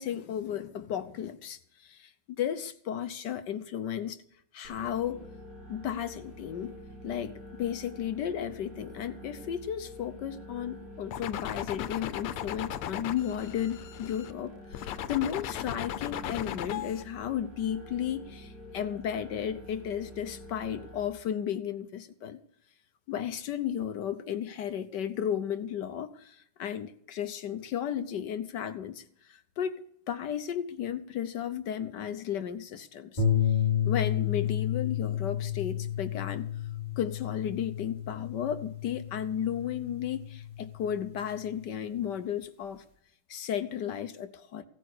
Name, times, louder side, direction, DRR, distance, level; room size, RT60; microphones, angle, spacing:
voice 1, 0.0-4.2 4.5-5.2 5.7-6.7 7.0-22.4 23.1-33.2 33.8-36.5 37.0-42.8 43.3-44.6, left 9 dB, 65° left, 1.2 m, -34 dB
sound 1, 4.6-21.1, equal, 75° right, 5.3 m, -47 dB
sound 2, 11.1-14.3 14.7-17.0, left 11 dB, 90° left, 1.7 m, -37 dB
sound 3, 33.2-41.6, left 9 dB, 20° left, 3.8 m, -31 dB
16.5 x 8.8 x 6.6 m
omnidirectional pair, 2.4 m